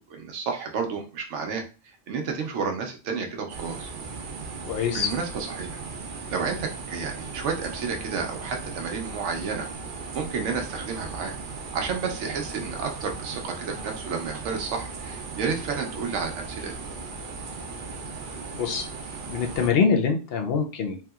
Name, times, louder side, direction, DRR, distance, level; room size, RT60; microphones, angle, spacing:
voice 1, 0.1-1.6 2.1-3.9 4.9-5.8 6.3-9.7 10.1-11.3 11.7-16.7, right 5 dB, 90° right, 4 dB, 1.0 m, -31 dB
sound 1, 3.5-19.7, right 4 dB, 55° right, 0.6 m, -37 dB
voice 2, 4.7-5.1 18.5-18.9 19.3-21.0, left 5 dB, 65° left, 3 dB, 0.8 m, -24 dB
3.4 x 2.8 x 2.3 m, 0.33 s
omnidirectional pair, 1.2 m